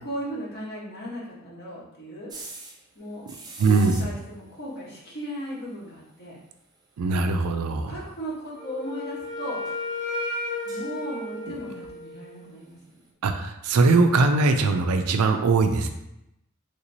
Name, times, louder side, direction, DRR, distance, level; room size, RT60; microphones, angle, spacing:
voice 1, 0.0-2.3 2.9-3.2 3.6-6.4 7.7-9.6 10.6-13.0, equal, 50° left, -6 dB, 1.2 m, -36 dB
sound 1, 2.3-2.9 3.3-4.5 4.9-5.0 5.2-5.3 5.6-5.7 7.4-7.5 8.3-8.4 9.1-9.3 9.7-9.9 10.4-11.3 12.9-13.0, right 3 dB, 20° right, 0.4 m, -42 dB
voice 2, 3.6-4.0 7.0-8.0 13.2-15.9, right 3 dB, 85° right, 7 dB, 0.4 m, -21 dB
Wind instrument woodwind instrument, 8.5-12.4, left 2 dB, 35° left, 0.6 m, -33 dB
3.2 x 2.9 x 2.7 m, 0.85 s
head